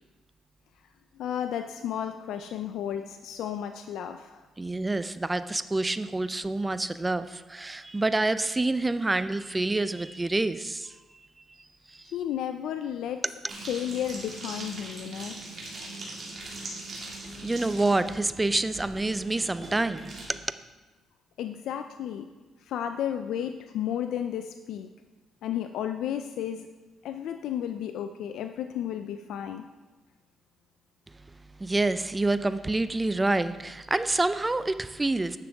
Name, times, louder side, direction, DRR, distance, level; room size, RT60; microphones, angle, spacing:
voice 1, 1.2-4.4 12.1-13.2 13.7-15.4 21.4-22.3 22.6-24.9 25.4-26.7 27.0-29.6, left 10 dB, 80° left, 7 dB, 0.3 m, -33 dB
voice 2, 4.6-11.0 11.9-12.1 17.2-20.4 31.6-35.4, right 2 dB, 15° right, 12 dB, 0.4 m, -27 dB
sound 1, 13.5-20.3, right 2 dB, 45° right, 2.6 m, -41 dB
9.7 x 6.8 x 3.5 m, 1.3 s
cardioid pair, 90°, 0 cm